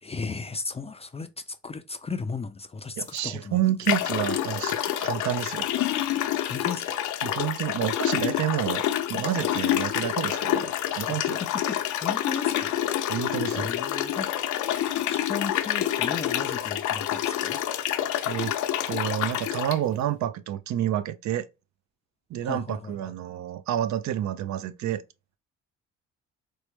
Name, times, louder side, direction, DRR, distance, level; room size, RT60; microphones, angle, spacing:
voice 1, 0.0-3.6 6.5-7.0 11.4-12.8 13.5-14.3 15.1-17.6 22.4-23.1, left 4 dB, 20° left, 0.4 m, -35 dB
voice 2, 3.0-5.7 7.2-11.4 13.1-13.7 18.3-18.5 18.9-21.5 22.3-25.0, right 11 dB, 70° right, 0.5 m, -29 dB
sound 1, 3.1-3.2 3.8-19.8, left 11 dB, 75° left, 0.6 m, -27 dB
4.5 x 2.1 x 3.0 m
cardioid pair, 90°, 30 cm